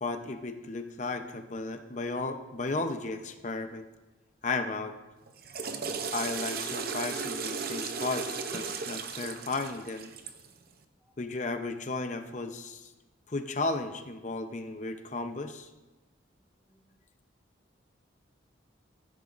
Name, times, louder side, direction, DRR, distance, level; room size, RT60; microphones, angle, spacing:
voice 1, 0.0-3.9 4.4-5.0 6.1-10.1 11.2-12.9 13.3-15.7, left 3 dB, 40° left, 7 dB, 0.8 m, -34 dB
Water / Toilet flush, 5.3-10.5, right 5 dB, 50° right, 0.7 m, -35 dB
voice 2, 11.0-11.4 11.7-11.9 12.3-12.4 16.6-16.9, right 2 dB, 5° right, -4 dB, 1.9 m, -68 dB
14.5 x 10.0 x 2.6 m, 1.1 s
head